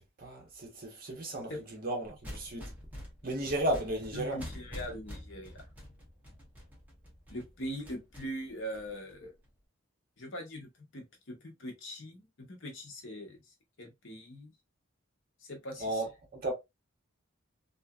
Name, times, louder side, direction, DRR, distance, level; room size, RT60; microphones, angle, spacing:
voice 1, 0.2-2.7 3.2-4.4 15.8-16.1 16.4-16.5, right 1 dB, 45° right, 0.9 m, -34 dB
sound 1, 2.0-9.5, equal, 5° right, 0.7 m, -47 dB
voice 2, 4.1-5.7 7.3-9.3 10.2-14.5 15.4-16.0, equal, 60° left, 0.9 m, -42 dB
2.8 x 2.4 x 2.3 m
head